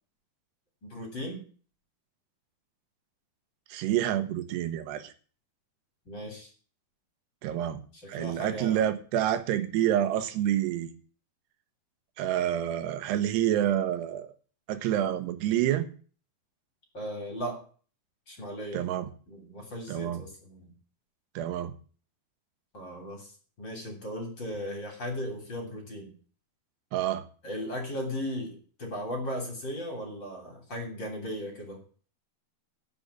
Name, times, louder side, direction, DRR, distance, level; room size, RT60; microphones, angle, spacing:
voice 1, 0.8-1.4 6.1-6.5 7.9-8.8 16.9-17.6 18.3-18.8 19.3-20.7 22.7-23.3 23.6-26.1 27.4-31.8, equal, 30° left, 2 dB, 3.4 m, -37 dB
voice 2, 3.7-5.1 7.4-7.8 8.1-10.9 12.2-14.3 14.7-15.9 18.7-19.1 19.9-20.2 21.4-21.7 26.9-27.2, right 11 dB, 85° right, 10 dB, 3.1 m, -28 dB
10.0 x 6.9 x 8.1 m, 0.41 s
omnidirectional pair, 4.7 m